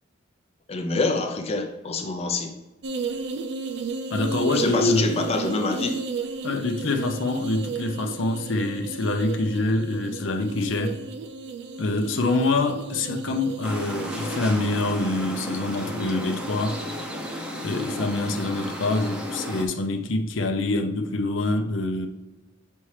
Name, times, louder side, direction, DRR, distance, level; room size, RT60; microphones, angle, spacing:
voice 1, 0.7-2.5 4.5-6.0, left 3 dB, 30° left, 0.5 m, -26 dB
sound 1, 2.8-14.4, right 4 dB, 60° right, 0.4 m, -33 dB
voice 2, 4.1-5.1 6.4-11.0 11.8-16.8 17.6-22.1, left 2 dB, 75° left, 0.6 m, -25 dB
sound 2, 13.6-19.6, left 1 dB, 5° right, 0.7 m, -33 dB
7.1 x 4.3 x 3.2 m
head